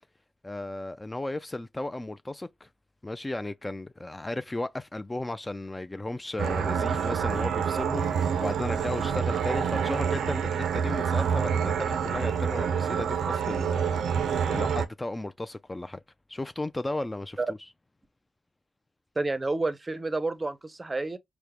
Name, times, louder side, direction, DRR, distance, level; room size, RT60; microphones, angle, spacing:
voice 1, 0.4-2.7 3.0-16.0 16.3-17.6, left 2 dB, 20° left, 0.3 m, -35 dB
sound 1, 6.4-14.9, right 7 dB, 80° right, 0.4 m, -27 dB
voice 2, 19.2-21.2, right 2 dB, 30° right, 0.6 m, -29 dB
4.5 x 2.0 x 3.2 m
supercardioid pair, 45°, 0 cm